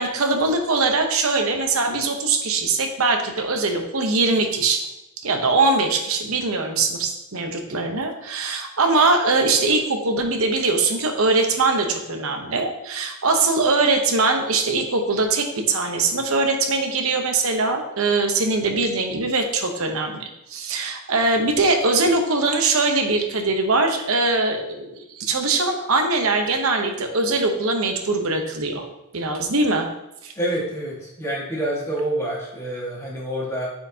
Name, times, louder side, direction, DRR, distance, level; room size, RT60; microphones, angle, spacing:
voice 1, 0.0-4.9 5.2-28.8 29.1-29.9 30.2-30.3, right 3 dB, 65° right, 4 dB, 0.9 m, -22 dB
voice 2, 30.4-33.7, right 1 dB, 15° left, -5 dB, 1.6 m, -27 dB
8.5 x 4.5 x 2.8 m, 0.89 s
head